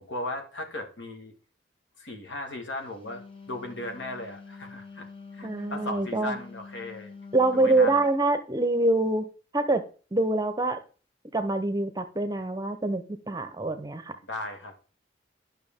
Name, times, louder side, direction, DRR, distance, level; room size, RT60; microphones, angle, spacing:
voice 1, 0.0-1.3 2.0-3.2 3.5-5.1 5.3-7.1 7.5-8.0 14.2-14.7, left 2 dB, 70° left, 5 dB, 1.6 m, -36 dB
Wind instrument woodwind instrument, 2.8-8.1, left 4 dB, 30° left, 1.0 m, -46 dB
voice 2, 5.4-6.4 7.3-9.2 9.5-9.8 10.1-10.8 11.3-14.1, right 2 dB, 20° right, 9 dB, 0.7 m, -25 dB
11.0 x 5.8 x 3.6 m, 0.38 s
head